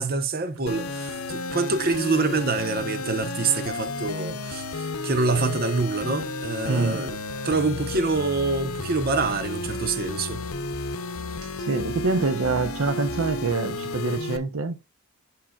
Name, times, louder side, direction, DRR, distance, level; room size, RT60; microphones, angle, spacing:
voice 1, 0.0-7.1 7.4-10.5, right 3 dB, 45° right, 0.8 m, -26 dB
sound 1, 0.7-14.4, left 2 dB, 75° left, 0.7 m, -32 dB
voice 2, 6.7-7.1 11.7-14.8, right 3 dB, 70° right, 0.8 m, -25 dB
8.9 x 4.9 x 2.3 m
head